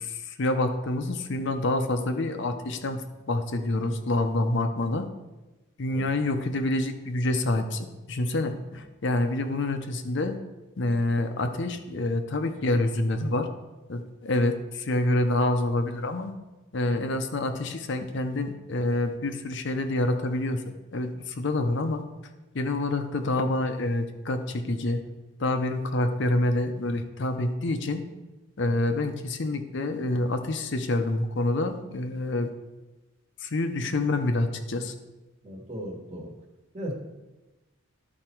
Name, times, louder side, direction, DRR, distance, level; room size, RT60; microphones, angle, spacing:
voice 1, 0.0-5.1 5.8-10.3 10.8-13.5 13.9-16.3 16.7-22.0 22.5-25.0 25.4-28.0 28.6-32.5 33.4-34.9, left 2 dB, 60° left, 7 dB, 0.6 m, -27 dB
voice 2, 35.4-36.3 36.7-36.9, equal, 30° right, 0 dB, 1.5 m, -37 dB
12.0 x 4.3 x 4.5 m, 1.1 s
head